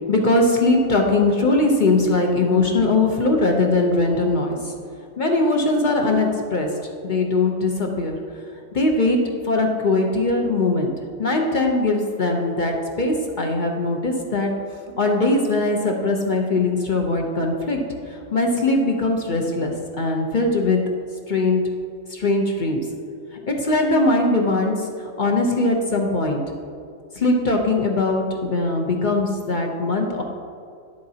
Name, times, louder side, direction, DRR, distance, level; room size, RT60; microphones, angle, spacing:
voice 1, 0.1-4.7 5.2-8.2 8.7-9.2 9.4-10.9 11.2-14.5 15.0-17.8 18.1-20.8 21.3-21.6 22.1-22.8 23.3-26.4 27.2-30.2, left 2 dB, 45° left, 1 dB, 0.6 m, -21 dB
10.5 x 7.7 x 2.8 m, 2.4 s
omnidirectional pair, 1.7 m